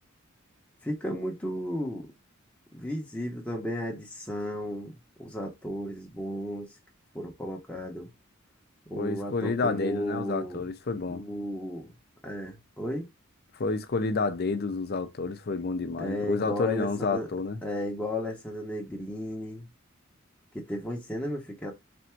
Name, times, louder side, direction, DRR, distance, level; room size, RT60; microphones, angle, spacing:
voice 1, 0.8-2.1 2.7-4.9 5.2-6.7 7.1-8.1 8.9-10.6 11.1-11.9 12.2-13.1 16.0-17.3 17.6-19.7 20.5-21.7, equal, 5° left, 0.8 m, -34 dB
voice 2, 8.9-11.2 13.5-17.6, left 3 dB, 50° left, 0.5 m, -30 dB
3.4 x 2.6 x 4.3 m
head